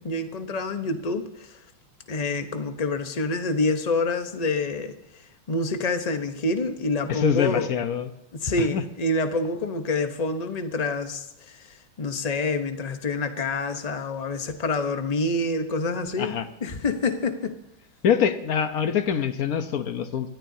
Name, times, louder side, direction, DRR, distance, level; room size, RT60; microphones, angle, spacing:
voice 1, 0.0-1.6 2.1-4.9 5.5-7.7 8.3-16.3 16.6-17.6, left 2 dB, 35° left, 8 dB, 0.6 m, -27 dB
voice 2, 7.1-8.1 8.6-8.8 16.2-16.4 18.0-20.3, left 8 dB, 55° left, 9 dB, 1.1 m, -24 dB
24.5 x 13.5 x 2.8 m, 0.80 s
omnidirectional pair, 2.2 m